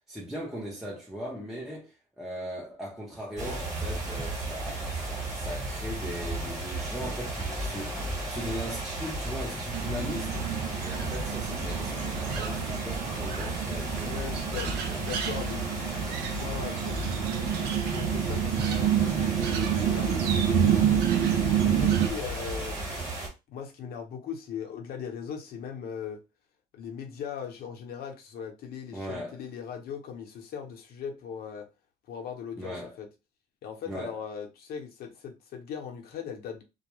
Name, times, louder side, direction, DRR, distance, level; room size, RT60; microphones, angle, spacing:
voice 1, 0.0-10.4 10.8-15.0 28.9-29.4 32.6-32.9 33.9-34.2, equal, ahead, 0.7 m, -39 dB
sound 1, 3.4-23.3, right 1 dB, 20° right, 1.3 m, -34 dB
sound 2, 9.7-22.1, right 8 dB, 75° right, 0.4 m, -28 dB
voice 2, 14.0-15.7 16.2-21.0 21.6-22.8 23.5-26.2 26.7-31.7 32.1-33.1 33.6-36.6, left 7 dB, 65° left, 0.8 m, -39 dB
2.3 x 2.1 x 3.0 m
cardioid pair, 110°, 17 cm